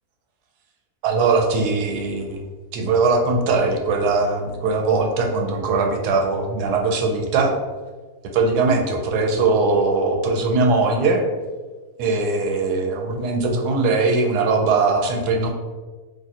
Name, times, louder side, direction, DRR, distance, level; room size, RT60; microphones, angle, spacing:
voice 1, 1.0-2.4 2.7-7.5 8.3-11.2 12.0-15.5, right 3 dB, 80° right, 2 dB, 1.1 m, -20 dB
2.8 x 2.4 x 4.1 m, 1.3 s
omnidirectional pair, 1.7 m